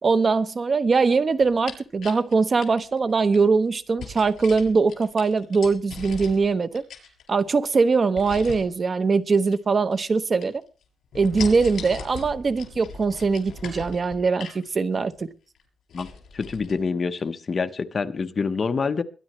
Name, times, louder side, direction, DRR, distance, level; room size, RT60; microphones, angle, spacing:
voice 1, 0.0-6.8 7.3-10.6 11.1-15.3, right 4 dB, 35° right, 0.9 m, -22 dB
sound 1, 1.4-3.4 4.0-6.5 6.8-7.6 8.2-8.7 9.5-10.2 10.4-10.8 11.1-14.6 15.1-15.2 15.5-15.6 15.9-16.8 17.1-17.2, left 5 dB, 75° left, 7.3 m, -39 dB
voice 2, 16.3-19.0, left 5 dB, 40° left, 1.0 m, -26 dB
22.5 x 11.0 x 3.2 m
wide cardioid pair, 135°, 0 cm